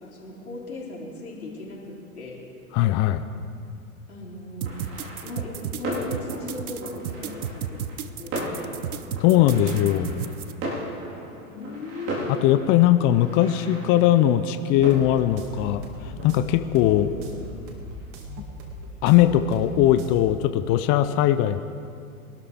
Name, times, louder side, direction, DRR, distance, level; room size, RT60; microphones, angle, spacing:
voice 1, 0.0-2.4 4.1-4.7 5.2-8.8 11.4-12.5 17.1-17.5, left 2 dB, 80° left, -3 dB, 3.6 m, -38 dB
voice 2, 2.7-3.3 9.2-10.2 12.3-17.1 19.0-21.6, left 12 dB, 30° left, 10 dB, 0.5 m, -20 dB
sound 1, 4.6-18.1, right 1 dB, 35° right, 4.1 m, -37 dB
sound 2, 4.6-10.5, right 8 dB, 80° right, 0.8 m, -33 dB
sound 3, 14.7-20.2, right 1 dB, 55° right, 2.3 m, -39 dB
23.0 x 12.5 x 3.6 m, 2.4 s
hypercardioid pair, 100°, 43 cm